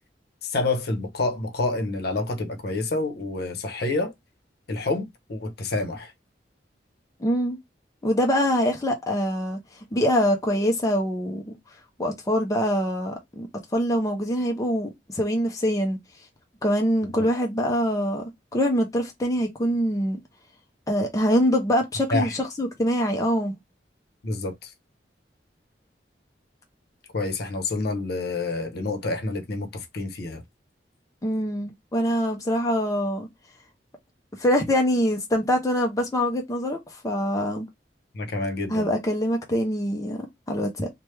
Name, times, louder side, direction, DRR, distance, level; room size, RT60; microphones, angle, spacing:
voice 1, 0.4-4.1 4.7-6.1 17.0-17.3 22.1-22.3 24.2-24.7 27.1-30.4 38.1-38.9, left 2 dB, 60° left, 0.7 m, -28 dB
voice 2, 7.2-7.6 8.0-9.6 9.9-11.6 12.0-16.0 16.6-20.2 20.9-23.6 31.2-33.3 34.4-37.7 38.7-40.9, equal, 20° left, 0.5 m, -24 dB
3.1 x 2.1 x 3.2 m
head